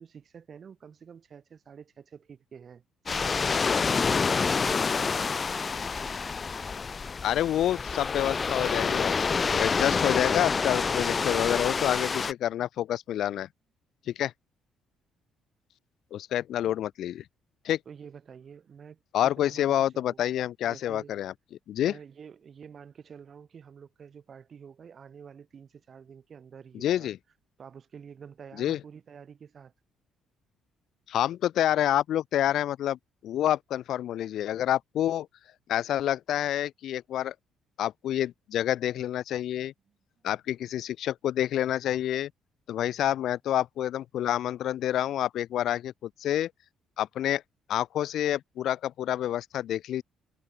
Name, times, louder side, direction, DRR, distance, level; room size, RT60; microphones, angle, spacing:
voice 1, 0.0-4.1 17.8-20.2 20.6-21.1 21.8-27.1 27.6-29.7, right 7 dB, 45° right, 6.4 m, -48 dB
sound 1, 3.1-12.3, left 5 dB, 35° left, 0.5 m, -27 dB
voice 2, 7.2-13.5 14.1-14.3 16.1-17.2 17.6-17.8 19.1-21.3 21.7-21.9 26.7-27.2 28.6-28.8 31.1-35.3 35.7-37.3 37.8-39.7 40.2-42.3 42.7-46.5 47.0-47.4 47.7-50.0, left 11 dB, 70° left, 0.8 m, -28 dB
supercardioid pair, 80°, 0 cm